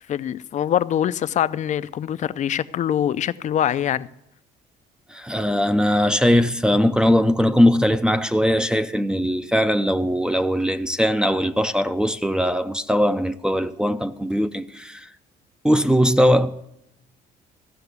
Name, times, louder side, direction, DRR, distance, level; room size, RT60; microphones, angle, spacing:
voice 1, 0.1-4.1, left 10 dB, 45° left, 0.5 m, -24 dB
voice 2, 5.1-15.1 15.6-16.6, equal, 5° right, 0.5 m, -20 dB
15.0 x 5.8 x 8.2 m
cardioid pair, 110°, 17 cm